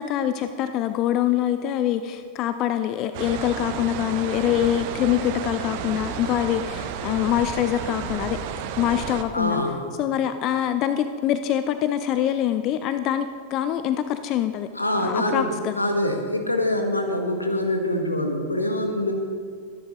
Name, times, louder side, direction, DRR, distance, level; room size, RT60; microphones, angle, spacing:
voice 1, 0.0-8.4 8.8-9.6 10.0-14.7 15.0-15.7, left 11 dB, 40° left, 11 dB, 0.5 m, -24 dB
sound 1, 3.1-9.2, right 8 dB, 50° right, 1.0 m, -32 dB
voice 2, 9.3-9.8 14.7-19.1, left 1 dB, 85° left, 5 dB, 1.4 m, -25 dB
23.0 x 10.5 x 3.1 m, 2.1 s
figure-of-eight pair, 90°, 0 cm